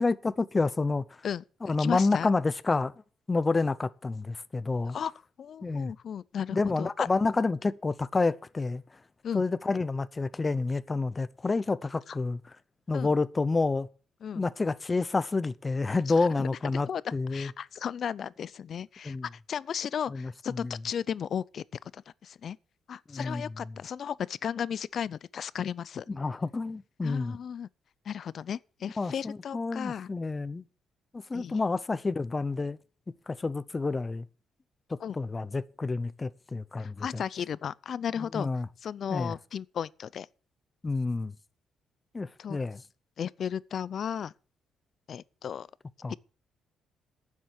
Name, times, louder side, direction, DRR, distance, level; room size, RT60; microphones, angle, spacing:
voice 1, 0.0-1.0 1.6-2.9 3.3-5.0 5.6-5.9 6.5-8.8 9.3-12.4 12.9-13.9 14.3-17.5 19.0-19.3 20.1-20.7 23.1-23.5 26.1-27.4 29.0-30.6 31.1-32.8 33.3-34.2 34.9-37.2 38.3-38.7 39.1-39.3 40.8-41.3 42.1-42.8 46.0-46.2, left 3 dB, 25° left, 0.7 m, -29 dB
voice 2, 1.2-2.3 4.9-5.1 5.4-7.1 9.2-9.5 12.1-12.2 12.9-13.1 14.2-14.4 16.4-16.5 16.9-19.2 19.5-21.6 21.9-22.6 22.9-26.1 27.0-27.7 28.1-30.1 31.3-31.6 35.0-35.2 36.8-38.5 38.8-40.3 42.4-42.6 43.2-44.3 45.1-45.7 46.1-46.2, left 8 dB, 55° left, 0.5 m, -35 dB
10.5 x 7.4 x 8.1 m
cardioid pair, 90°, 0 cm